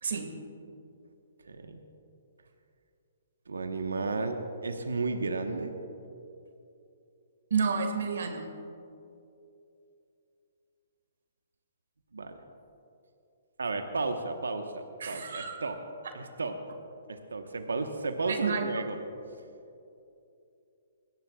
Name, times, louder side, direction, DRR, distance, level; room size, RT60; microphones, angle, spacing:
voice 1, 0.0-0.3 7.5-8.5 15.0-15.5 18.3-18.7, right 5 dB, 70° right, 6 dB, 1.8 m, -30 dB
voice 2, 1.5-1.8 3.5-5.7 12.1-12.4 13.6-15.8 16.1-16.6 17.1-19.0, right 3 dB, 90° right, 6 dB, 1.1 m, -33 dB
21.0 x 16.5 x 2.4 m, 2.7 s
hypercardioid pair, 135°, 0 cm